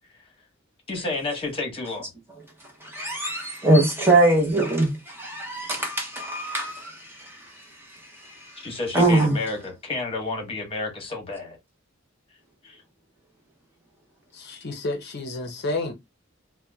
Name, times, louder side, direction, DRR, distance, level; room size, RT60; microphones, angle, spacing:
voice 1, 0.9-2.1 8.6-11.6 12.6-12.8, left 3 dB, 30° left, 0.9 m, -30 dB
voice 2, 2.9-6.9 8.9-9.4, right 2 dB, 10° right, 0.6 m, -21 dB
voice 3, 14.3-15.9, left 2 dB, 55° left, 0.6 m, -30 dB
2.8 x 2.1 x 2.2 m
head